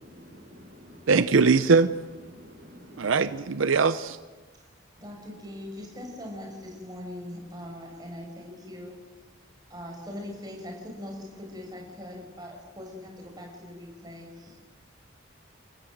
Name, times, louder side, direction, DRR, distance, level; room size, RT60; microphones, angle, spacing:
voice 1, 0.3-1.1 1.4-1.5 2.2-3.4, equal, 50° right, 4 dB, 4.8 m, -49 dB
voice 2, 1.1-1.9 3.0-4.2, right 4 dB, 90° right, 12 dB, 0.6 m, -21 dB
voice 3, 5.0-8.9 9.7-14.6, left 1 dB, 20° right, 0 dB, 6.2 m, -41 dB
29.5 x 14.0 x 7.9 m, 1.3 s
head